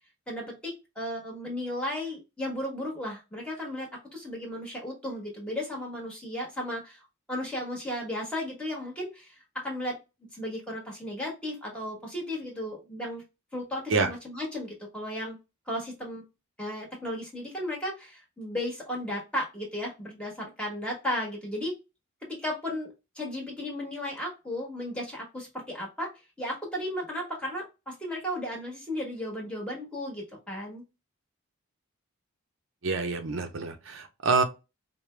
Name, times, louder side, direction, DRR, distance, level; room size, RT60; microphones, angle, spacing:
voice 1, 0.3-7.0 7.3-9.4 9.6-10.0 10.3-13.2 13.5-15.4 15.7-16.2 16.6-21.7 22.2-26.1 26.4-30.8, left 1 dB, 5° left, 1.3 m, -35 dB
voice 2, 32.8-34.4, right 4 dB, 70° right, 0.6 m, -27 dB
4.8 x 2.2 x 3.2 m
head